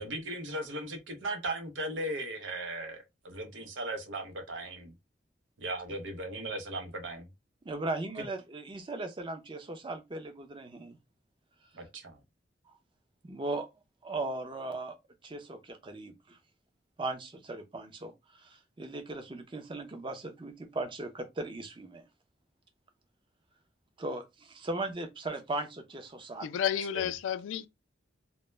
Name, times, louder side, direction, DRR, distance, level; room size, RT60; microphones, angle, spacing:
voice 1, 0.0-4.9 5.6-7.3 11.7-12.2 26.9-27.0, right 1 dB, 85° right, 0.6 m, -37 dB
voice 2, 7.6-11.0 12.7-12.8 13.2-13.7 14.0-15.0 15.2-16.4 17.0-22.1 24.0-26.5, right 2 dB, 25° right, 0.5 m, -38 dB
voice 3, 26.4-27.7, left 9 dB, 90° left, 0.3 m, -31 dB
2.1 x 2.0 x 3.1 m
head